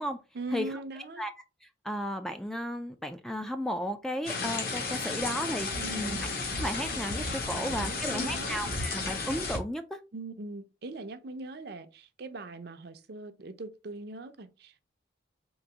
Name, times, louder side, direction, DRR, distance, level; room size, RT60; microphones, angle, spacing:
voice 1, 0.3-1.2 5.8-6.3 7.5-8.6 10.1-14.8, right 2 dB, 55° right, 0.6 m, -41 dB
voice 2, 1.6-5.7 6.0-6.2 6.5-10.0, equal, ahead, 0.3 m, -34 dB
sound 1, 4.3-9.6, left 3 dB, 55° left, 1.2 m, -33 dB
3.9 x 2.6 x 4.7 m
head